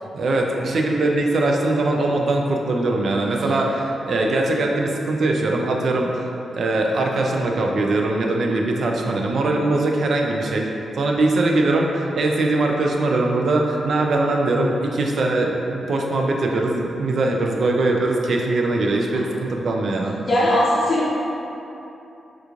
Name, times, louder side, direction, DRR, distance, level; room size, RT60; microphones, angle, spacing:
voice 1, 0.0-6.1 6.5-10.7 10.9-20.2, right 2 dB, 60° right, 1 dB, 0.3 m, -21 dB
voice 2, 20.2-21.1, left 1 dB, 40° left, -8 dB, 0.5 m, -19 dB
3.6 x 2.9 x 2.4 m, 2.9 s
cardioid pair, 105°, 0 cm